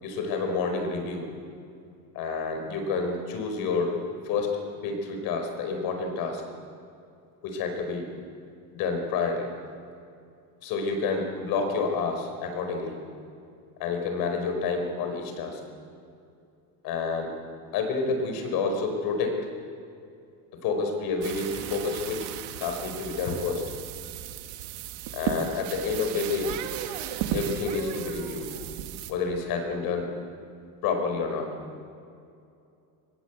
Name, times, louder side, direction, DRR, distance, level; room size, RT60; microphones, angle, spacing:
voice 1, 0.0-1.3 2.2-3.9 4.3-6.4 7.4-8.1 8.7-9.5 10.6-13.0 13.8-15.6 16.8-17.3 17.7-19.5 20.6-22.3 22.6-23.7 25.1-26.5 27.3-28.5 29.1-30.1 30.8-31.5, left 4 dB, 60° left, 4 dB, 5.2 m, -29 dB
sound 1, 21.2-29.1, right 11 dB, 80° right, 2.0 m, -35 dB
24.0 x 20.0 x 8.4 m, 2.5 s
cardioid pair, 165°, 40 cm